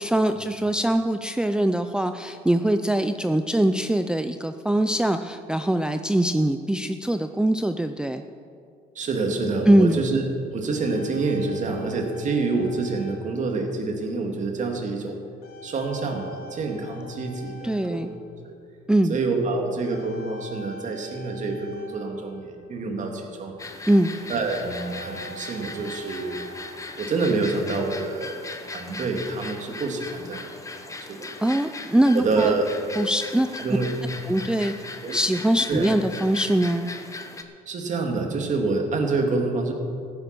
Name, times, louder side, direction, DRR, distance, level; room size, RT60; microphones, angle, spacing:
voice 1, 0.0-8.2 9.7-10.0 17.6-18.1 18.9-19.2 23.9-24.1 31.4-32.5 33.0-33.6 34.3-34.7 35.1-36.9, right 1 dB, 5° right, 8 dB, 0.5 m, -22 dB
voice 2, 8.9-10.2 10.5-15.2 15.6-18.2 19.1-23.6 24.3-26.4 27.0-28.4 28.7-30.5 31.1-31.3 32.1-32.7 33.6-33.9 35.0-35.1 35.7-35.9 37.7-39.7, right 3 dB, 45° right, 3 dB, 2.3 m, -27 dB
sound 1, 10.5-14.1 14.7-14.9 15.4-18.7 19.8-22.9 23.6-23.7 24.0-27.1, right 1 dB, 65° left, 2.1 m, -45 dB
sound 2, 23.6-37.4, left 3 dB, 20° left, 1.2 m, -39 dB
14.5 x 10.5 x 6.1 m, 2.3 s
cardioid pair, 110°, 17 cm